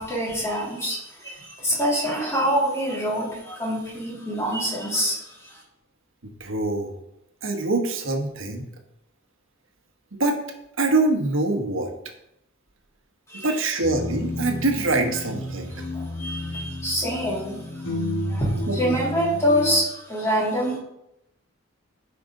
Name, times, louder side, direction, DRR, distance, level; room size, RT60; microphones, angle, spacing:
voice 1, 0.0-5.6 13.3-13.5 15.9-17.6 17.8-17.9 18.3-20.8, equal, 15° left, -5 dB, 3.0 m, -25 dB
voice 2, 6.2-7.0 7.4-8.7 10.1-10.4 10.8-11.9 13.3-15.9 18.7-19.1, right 2 dB, 70° right, 4 dB, 1.3 m, -24 dB
sound 1, 13.8-19.8, left 1 dB, 75° left, 1.5 m, -31 dB
10.0 x 6.0 x 3.8 m, 0.82 s
head